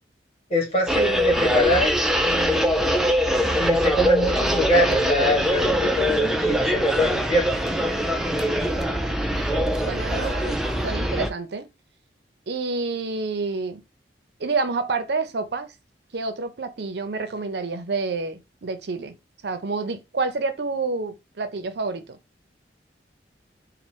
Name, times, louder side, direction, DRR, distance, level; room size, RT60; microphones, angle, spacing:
voice 1, 0.5-2.8 3.6-7.6, left 1 dB, 35° left, 1.9 m, -24 dB
sound 1, 0.9-11.3, equal, 5° right, 0.4 m, -23 dB
voice 2, 8.4-11.7 12.5-13.8 14.4-15.7 16.1-19.1 19.4-22.2, right 3 dB, 65° right, 0.6 m, -29 dB
4.3 x 2.1 x 4.5 m
head